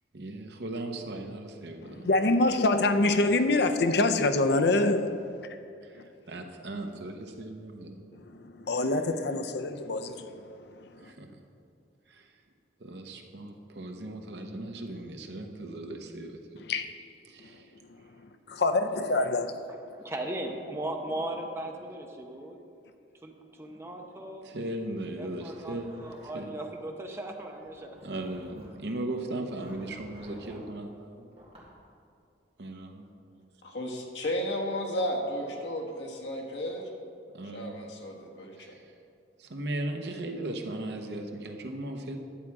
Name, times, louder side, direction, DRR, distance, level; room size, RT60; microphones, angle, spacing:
voice 1, 0.1-2.1 3.0-3.4 5.8-8.0 11.0-11.3 12.1-12.3 12.8-16.6 17.3-17.7 24.4-26.1 26.3-26.5 28.0-31.3 32.6-33.1 37.3-37.9 38.6-38.8 39.4-42.2, right 1 dB, 70° right, 0.9 m, -38 dB
voice 2, 1.8-5.6 5.9-6.0 8.1-11.1 16.6-16.9 17.4-19.6, left 2 dB, 65° left, 0.5 m, -27 dB
voice 3, 19.9-22.6 23.2-23.3 23.6-24.5 25.2-28.0, right 1 dB, 15° right, 0.7 m, -37 dB
Zipper (clothing), 25.2-26.7 27.6-28.8 29.6-30.7 31.3-31.7, equal, 35° right, 2.1 m, -52 dB
voice 4, 33.6-36.9 37.5-38.8, equal, 80° left, 1.3 m, -33 dB
10.0 x 7.3 x 4.7 m
head